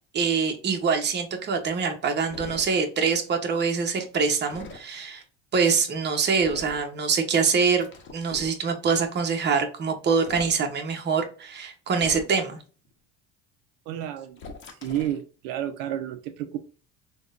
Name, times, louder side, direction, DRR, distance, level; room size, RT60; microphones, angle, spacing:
voice 1, 0.1-5.2 5.5-12.6, right 5 dB, 35° right, 5 dB, 0.8 m, -25 dB
sound 1, 2.3-2.7 4.5-4.8 6.4-6.8 7.8-8.6 10.1-10.6 11.9-12.5 14.4-15.2, left 4 dB, 40° left, 0.8 m, -41 dB
voice 2, 13.9-14.4 14.8-16.6, right 11 dB, 80° right, 8 dB, 0.5 m, -31 dB
3.6 x 2.2 x 2.5 m, 0.37 s
supercardioid pair, 105°, 31 cm